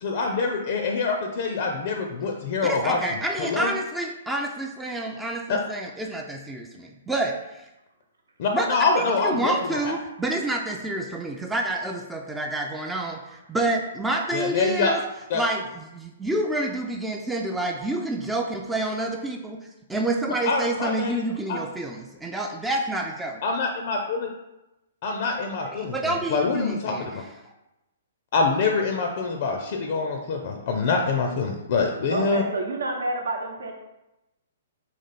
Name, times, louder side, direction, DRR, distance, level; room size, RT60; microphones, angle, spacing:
voice 1, 0.0-3.0 3.4-3.7 5.5-5.6 8.4-9.9 14.3-14.9 15.3-15.4 20.4-21.2 21.5-21.6 23.4-24.3 25.0-27.0 28.3-32.4, left 4 dB, 45° left, 3 dB, 0.5 m, -25 dB
voice 2, 2.6-7.7 8.5-15.0 15.3-19.6 19.9-23.4 25.8-27.1, right 2 dB, 10° right, 1 dB, 0.4 m, -28 dB
voice 3, 32.1-33.7, right 2 dB, 70° right, 1 dB, 0.9 m, -28 dB
4.1 x 3.0 x 4.1 m, 0.95 s
figure-of-eight pair, 120°, 0 cm